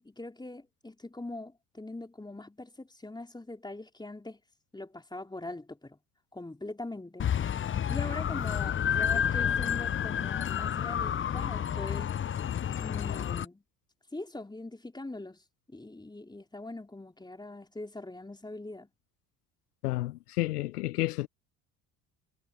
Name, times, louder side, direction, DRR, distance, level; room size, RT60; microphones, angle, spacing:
voice 1, 0.0-4.4 4.7-6.0 6.3-7.3 7.9-12.1 12.8-13.6 14.1-15.4 15.7-18.9, left 2 dB, 10° left, 4.2 m, -42 dB
sound 1, 7.2-13.4, left 9 dB, 25° left, 0.8 m, -30 dB
voice 2, 19.8-21.3, left 18 dB, 80° left, 0.8 m, -31 dB
hypercardioid pair, 65°, 46 cm